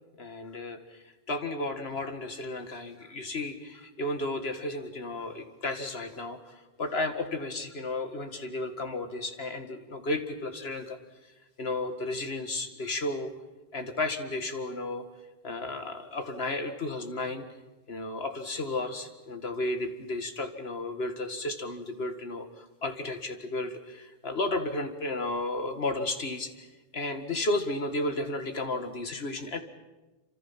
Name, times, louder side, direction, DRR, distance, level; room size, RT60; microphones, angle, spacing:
voice 1, 0.2-1.0 1.3-11.0 11.6-13.3 13.7-15.0 15.4-17.5 17.9-26.7 26.9-29.6, left 2 dB, 75° left, 7 dB, 2.1 m, -33 dB
28.5 x 26.0 x 5.9 m, 1.1 s
omnidirectional pair, 1.1 m